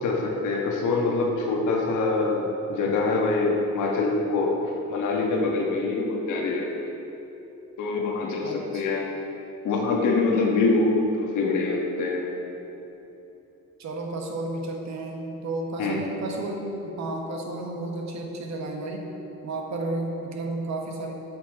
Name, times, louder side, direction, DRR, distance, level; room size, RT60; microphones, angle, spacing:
voice 1, 0.0-4.6 4.9-6.7 7.8-9.1 9.6-12.4 15.8-16.0, left 3 dB, 80° left, 0 dB, 1.3 m, -24 dB
voice 2, 8.4-8.8 13.8-19.1 19.4-21.1, right 2 dB, 65° right, 2 dB, 1.2 m, -32 dB
7.6 x 5.9 x 4.8 m, 3.0 s
cardioid pair, 90°, 30 cm